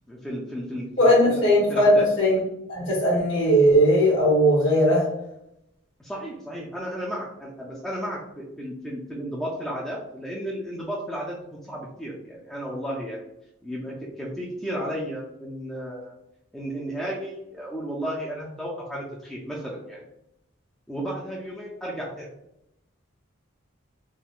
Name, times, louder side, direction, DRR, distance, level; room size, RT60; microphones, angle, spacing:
voice 1, 0.1-2.1 6.0-13.3 13.6-16.1 16.5-20.1 20.9-22.3, equal, ahead, -5 dB, 0.3 m, -33 dB
voice 2, 1.0-2.4 2.7-5.1, equal, 65° left, -6 dB, 0.8 m, -18 dB
3.6 x 2.1 x 2.3 m, 0.82 s
head